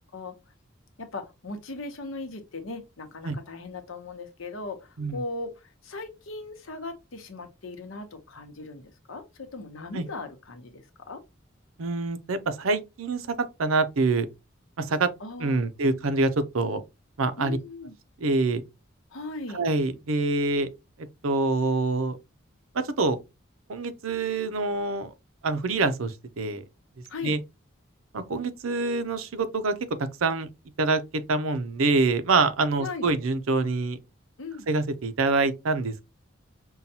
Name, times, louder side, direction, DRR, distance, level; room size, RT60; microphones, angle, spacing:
voice 1, 1.0-10.8 11.1-11.2 15.2-15.7 17.4-17.9 19.1-19.6 27.1-27.3 32.8-33.1 34.4-34.6, left 3 dB, 80° left, 0.9 m, -38 dB
voice 2, 11.8-13.3 13.6-14.3 14.8-15.1 15.4-16.3 16.5-16.8 17.2-17.6 18.2-18.6 19.5-20.7 21.2-22.2 23.0-23.2 23.7-25.1 25.4-26.6 27.2-27.4 28.1-29.7 30.2-30.5 30.8-31.0 31.3-34.0 34.7-36.1, right 3 dB, 90° right, 0.6 m, -25 dB
5.5 x 2.3 x 2.7 m
head